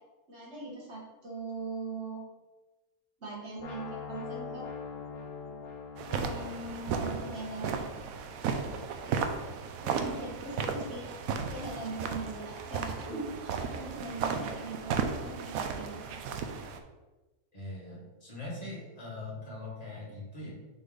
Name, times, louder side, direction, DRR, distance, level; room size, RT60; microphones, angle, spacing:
voice 1, 0.3-2.2 3.2-4.7 6.0-8.0 9.8-11.1 11.4-16.3, right 3 dB, 50° right, -3 dB, 1.8 m, -41 dB
sound 1, 3.6-9.5, left 5 dB, 65° left, 1.1 m, -44 dB
sound 2, 6.0-16.8, right 6 dB, 75° right, 1.0 m, -35 dB
voice 2, 17.5-20.5, left 2 dB, 25° left, -7 dB, 2.3 m, -42 dB
6.5 x 4.3 x 3.8 m, 1.1 s
omnidirectional pair, 1.6 m